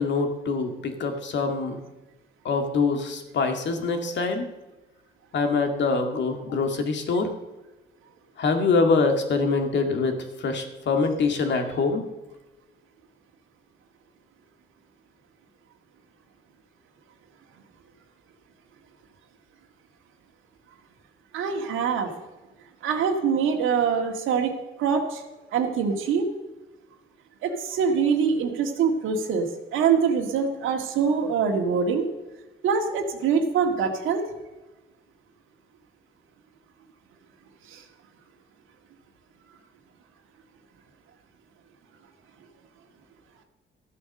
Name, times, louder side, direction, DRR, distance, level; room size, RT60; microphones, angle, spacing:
voice 1, 0.0-1.8 2.4-4.5 5.3-7.3 8.4-12.0, left 4 dB, 65° left, 5 dB, 2.0 m, -24 dB
voice 2, 21.3-22.1 22.8-25.2 25.5-26.3 27.4-29.5 29.7-32.1 32.6-34.2 37.7-37.8, right 6 dB, 85° right, 3 dB, 1.8 m, -24 dB
13.5 x 8.0 x 6.6 m, 1.1 s
cardioid pair, 90°, 20 cm